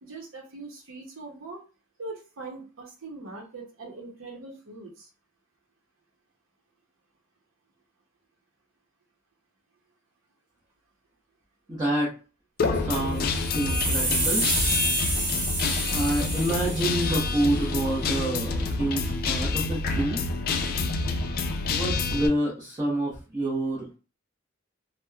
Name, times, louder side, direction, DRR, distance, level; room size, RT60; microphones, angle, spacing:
voice 1, 0.0-1.6 2.0-5.1, right 3 dB, 75° right, -1 dB, 0.7 m, -41 dB
voice 2, 11.7-12.2 12.7-14.5 15.9-20.2 21.7-24.0, right 1 dB, 20° right, -6 dB, 0.8 m, -28 dB
Guitar, 12.6-22.3, left 3 dB, 50° left, 0.4 m, -27 dB
sound 1, 13.2-17.4, right 2 dB, 50° right, 1.2 m, -29 dB
2.9 x 2.0 x 2.3 m, 0.33 s
head